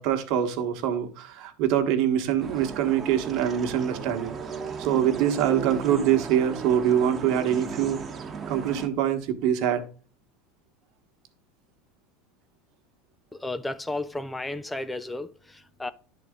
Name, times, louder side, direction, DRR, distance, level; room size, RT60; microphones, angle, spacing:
voice 1, 0.0-4.4 4.8-8.0 8.5-9.8, right 10 dB, 60° right, 1.2 m, -24 dB
sound 1, 2.4-8.9, right 5 dB, 30° right, 1.0 m, -36 dB
voice 2, 13.4-15.9, left 2 dB, 10° left, 0.4 m, -33 dB
10.5 x 4.0 x 3.6 m
hypercardioid pair, 95°, 0 cm